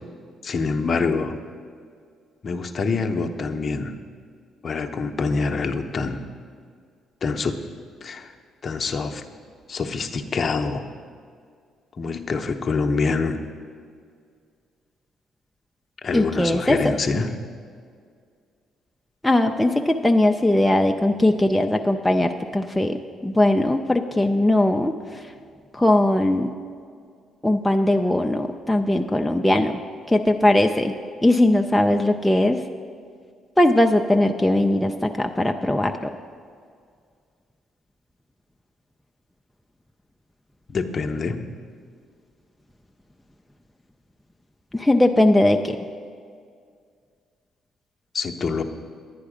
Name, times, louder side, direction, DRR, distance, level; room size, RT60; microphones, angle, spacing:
voice 1, 0.4-1.4 2.4-4.0 4.6-6.2 7.2-7.6 8.0-8.3 8.6-9.2 9.7-10.9 12.0-13.4 16.0-17.3 40.7-41.4 48.1-48.6, left 4 dB, 40° left, 5 dB, 0.8 m, -25 dB
voice 2, 16.1-17.0 19.2-23.0 23.2-24.9 25.7-26.5 27.4-29.8 30.1-30.9 31.2-32.6 33.6-36.1 44.7-45.8, left 1 dB, 5° left, 3 dB, 0.5 m, -19 dB
10.5 x 9.4 x 5.0 m, 2.1 s
cardioid pair, 85°, 0 cm